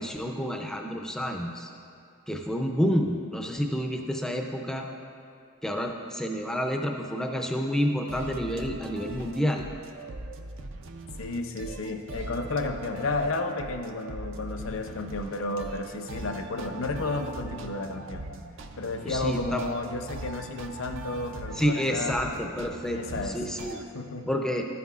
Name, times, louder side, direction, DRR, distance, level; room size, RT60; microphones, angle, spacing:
voice 1, 0.0-1.7 2.3-4.9 5.6-9.7 19.0-19.6 21.6-23.9 24.3-24.6, equal, ahead, 2 dB, 0.4 m, -29 dB
sound 1, 8.1-23.8, right 2 dB, 55° right, 0.5 m, -41 dB
voice 2, 11.2-18.3 18.8-22.2 22.9-23.4 23.9-24.3, left 2 dB, 60° left, 6 dB, 0.6 m, -32 dB
12.0 x 9.4 x 2.4 m, 2.4 s
head